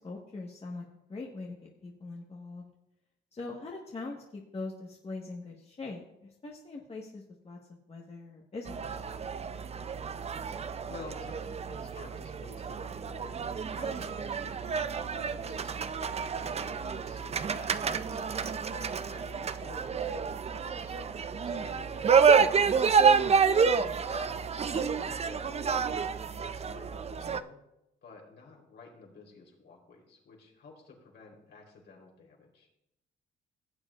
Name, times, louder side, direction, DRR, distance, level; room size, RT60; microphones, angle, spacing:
voice 1, 0.0-2.6 3.3-7.6 7.9-9.2 23.8-24.1, left 3 dB, 30° left, -1 dB, 1.4 m, -42 dB
sound 1, 8.7-27.4, right 6 dB, 30° right, 0.5 m, -29 dB
voice 2, 10.3-13.4 13.7-16.7 17.1-18.2 18.7-20.9 21.4-23.1 24.1-26.0 26.4-27.6 28.0-32.7, left 4 dB, 65° left, -1 dB, 3.7 m, -51 dB
17.0 x 7.9 x 2.5 m, 0.86 s
cardioid pair, 90°, 20 cm